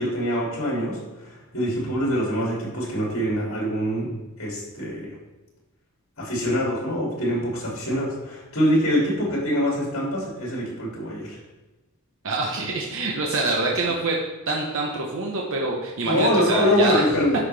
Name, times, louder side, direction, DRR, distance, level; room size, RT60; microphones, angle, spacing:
voice 1, 0.0-4.1 4.4-5.1 6.2-11.4 16.0-17.3, equal, 65° left, -4 dB, 2.7 m, -24 dB
voice 2, 12.2-14.2 14.5-17.0, right 2 dB, 65° right, -1 dB, 0.9 m, -25 dB
9.7 x 5.6 x 3.4 m, 1.1 s
head